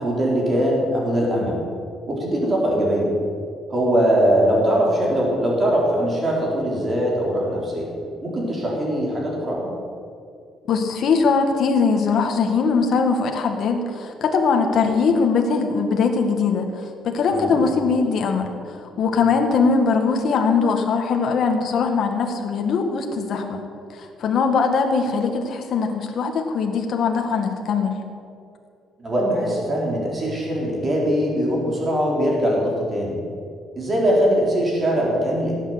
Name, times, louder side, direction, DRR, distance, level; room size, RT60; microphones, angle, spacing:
voice 1, 0.0-1.6 2.1-3.1 3.7-7.9 8.2-9.7 17.3-17.6 19.2-19.3 29.0-33.2 33.8-35.5, equal, 25° right, -3 dB, 3.9 m, -21 dB
voice 2, 10.7-23.6 23.9-28.0, left 5 dB, 50° left, 3 dB, 1.7 m, -21 dB
17.0 x 8.7 x 7.9 m, 2.4 s
cardioid pair, 165°, 0 cm